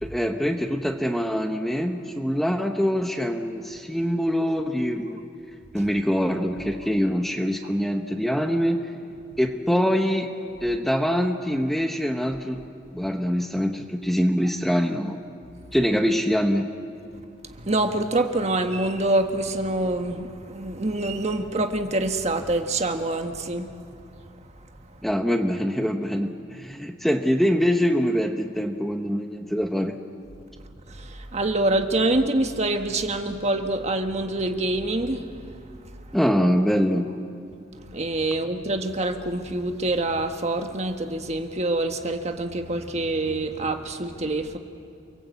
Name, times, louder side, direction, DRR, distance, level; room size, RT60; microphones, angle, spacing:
voice 1, 0.0-5.2 5.7-8.9 9.4-10.3 10.6-12.6 12.9-15.2 15.7-16.7 25.0-30.0 36.1-37.1, equal, ahead, 5 dB, 0.9 m, -24 dB
voice 2, 17.5-23.7 30.9-35.3 37.9-44.6, right 2 dB, 35° right, 6 dB, 1.5 m, -26 dB
29.0 x 22.0 x 8.2 m, 2.5 s
head